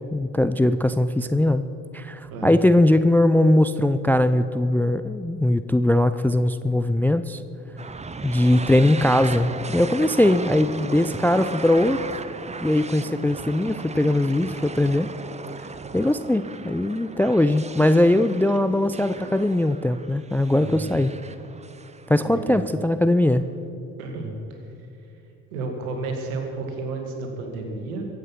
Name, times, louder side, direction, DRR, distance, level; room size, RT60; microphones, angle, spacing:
voice 1, 0.1-1.6 1.9-7.4 8.2-12.0 12.6-15.1 15.9-21.1 22.1-23.4, left 1 dB, 5° left, 13 dB, 0.4 m, -20 dB
sound 1, 7.8-22.7, right 4 dB, 15° right, 0.8 m, -37 dB
voice 2, 20.5-20.9 22.2-22.7 24.0-24.6 25.5-28.0, right 3 dB, 75° right, 3 dB, 2.4 m, -31 dB
23.0 x 8.1 x 5.8 m, 2.9 s
figure-of-eight pair, 50°, 43 cm